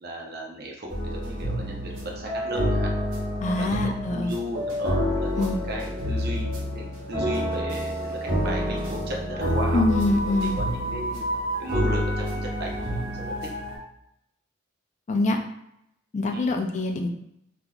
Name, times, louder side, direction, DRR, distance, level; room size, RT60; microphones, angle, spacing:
voice 1, 0.0-2.9 3.6-9.8 10.4-11.2 11.6-13.5 16.3-16.5, right 1 dB, 55° right, 0 dB, 0.7 m, -36 dB
sound 1, 0.9-13.8, equal, 75° right, 1.1 m, -28 dB
voice 2, 3.4-4.3 5.4-5.6 9.7-10.6 15.1-15.4 16.1-17.1, left 2 dB, 40° left, 3 dB, 0.4 m, -24 dB
3.7 x 2.8 x 2.3 m, 0.78 s
head